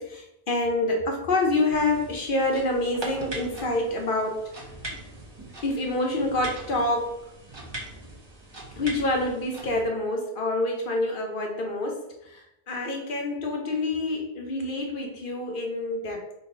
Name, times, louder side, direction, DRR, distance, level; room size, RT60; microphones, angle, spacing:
voice 1, 0.0-4.5 5.6-7.2 8.8-16.3, left 2 dB, 55° left, 2 dB, 1.0 m, -27 dB
sound 1, 1.7-9.8, right 1 dB, 25° right, 0.9 m, -41 dB
4.1 x 2.9 x 4.4 m, 0.86 s
omnidirectional pair, 1.1 m